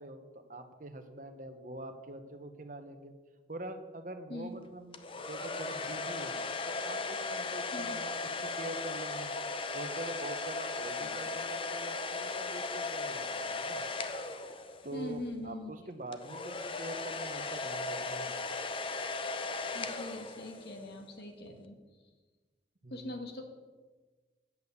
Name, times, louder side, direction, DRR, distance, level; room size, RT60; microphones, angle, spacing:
voice 1, 0.0-3.1 3.5-8.1 8.4-9.3 9.7-13.9 14.8-18.4 22.8-23.1, right 2 dB, 45° right, 7 dB, 1.0 m, -45 dB
sound 1, 4.9-15.1 16.1-20.8, left 3 dB, 30° left, 0.6 m, -37 dB
voice 2, 14.9-15.7 19.7-21.8 22.9-23.4, left 1 dB, 65° left, 3 dB, 1.7 m, -42 dB
8.8 x 8.3 x 7.1 m, 1.3 s
head